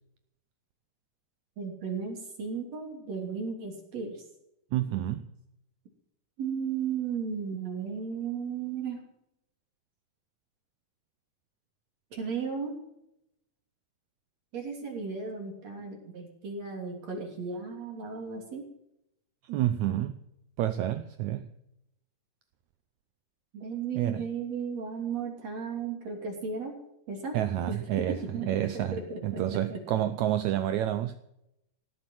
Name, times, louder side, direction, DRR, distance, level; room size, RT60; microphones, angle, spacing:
voice 1, 1.6-4.2 6.4-9.0 12.1-12.7 14.5-18.7 23.5-26.8 27.1-27.4 27.7-28.5 28.7-29.8, right 5 dB, 50° right, 4.1 m, -35 dB
voice 2, 4.7-5.3 19.4-20.2 20.6-21.5 24.0-24.2 27.3-28.2 28.5-31.2, right 12 dB, 75° right, 1.8 m, -29 dB
17.5 x 7.4 x 9.1 m
omnidirectional pair, 3.8 m